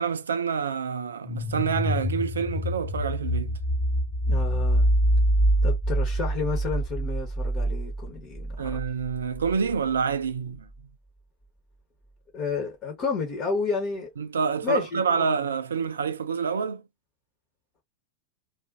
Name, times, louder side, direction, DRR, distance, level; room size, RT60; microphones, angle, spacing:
voice 1, 0.0-3.6 8.6-10.7 14.2-16.8, right 6 dB, 70° right, 0.4 m, -27 dB
sound 1, 1.3-10.0, right 1 dB, 5° left, 0.5 m, -26 dB
voice 2, 4.3-4.9 5.6-8.7 12.3-14.1 14.6-15.4, left 4 dB, 35° left, 1.1 m, -31 dB
2.6 x 2.5 x 2.4 m
figure-of-eight pair, 90°, 0 cm